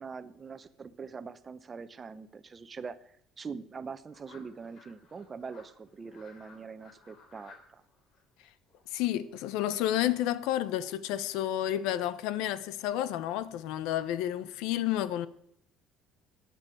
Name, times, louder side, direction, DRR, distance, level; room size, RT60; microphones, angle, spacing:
voice 1, 0.0-7.8, right 5 dB, 30° right, 0.9 m, -43 dB
sound 1, 4.1-10.0, left 4 dB, 55° left, 3.7 m, -58 dB
voice 2, 8.9-15.3, left 12 dB, 85° left, 0.8 m, -30 dB
13.5 x 9.5 x 7.7 m
cardioid pair, 115°, 0 cm